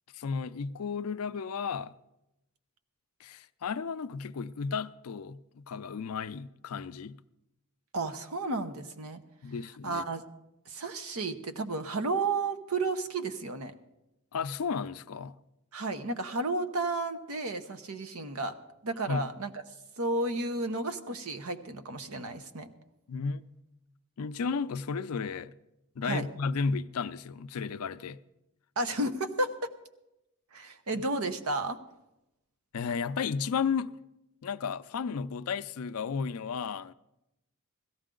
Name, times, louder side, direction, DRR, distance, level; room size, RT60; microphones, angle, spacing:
voice 1, 0.1-1.9 3.2-7.2 9.4-10.0 14.3-15.4 19.1-19.3 23.1-23.4 24.2-25.5 26.0-28.2 30.9-31.0 32.7-34.0 34.4-36.9, left 5 dB, 85° left, 0.5 m, -33 dB
voice 2, 7.9-9.2 9.8-10.2 10.7-13.7 15.7-18.5 18.8-19.5 20.0-22.7 26.0-26.3 28.8-29.5 30.5-31.8, right 2 dB, 75° right, 0.9 m, -32 dB
16.5 x 13.5 x 3.8 m
head